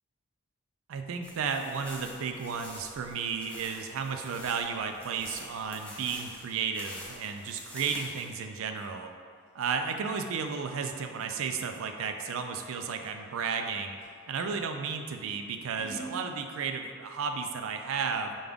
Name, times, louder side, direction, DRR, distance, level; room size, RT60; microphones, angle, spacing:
voice 1, 0.9-9.1 9.5-14.0 14.3-18.4, right 5 dB, 65° right, 6 dB, 0.3 m, -33 dB
sound 1, 1.2-8.3, left 1 dB, 5° left, 0.4 m, -47 dB
Scissors, 8.7-14.6 15.1-16.2, right 1 dB, 40° right, 1.5 m, -49 dB
5.1 x 2.3 x 3.5 m, 2.2 s
head